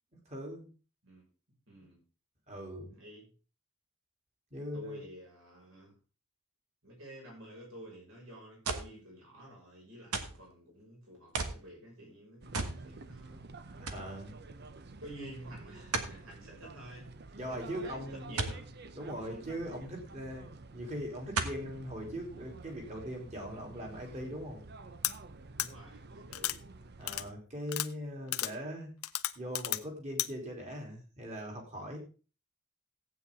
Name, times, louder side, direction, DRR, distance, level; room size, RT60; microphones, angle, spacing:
voice 1, 0.3-0.7 2.5-2.9 4.5-5.0 13.8-14.3 17.4-18.4 18.9-24.6 27.0-28.9 29.3-32.0, equal, 30° right, 1 dB, 3.4 m, -40 dB
voice 2, 1.7-2.0 2.9-3.3 4.7-5.9 6.8-13.4 14.3-14.5 15.0-18.7 19.1-19.4 25.5-26.6, equal, 65° right, -2 dB, 6.2 m, -50 dB
sound 1, 8.6-9.0 10.1-10.4 11.3-11.6 12.5-12.8 13.2-13.3 13.9-14.1 15.9-16.2 18.4-18.6 20.1-20.2 21.3-21.7 22.4-22.5, right 4 dB, 85° right, 1.5 m, -34 dB
sound 2, 12.4-27.3, right 3 dB, 45° right, 0.7 m, -50 dB
sound 3, 25.0-25.1 25.6-25.7 26.3-26.6 27.1-27.2 27.7-27.9 28.3-28.5 29.0-29.8 30.2-30.3, left 15 dB, 80° left, 0.6 m, -32 dB
15.0 x 8.9 x 3.7 m, 0.35 s
head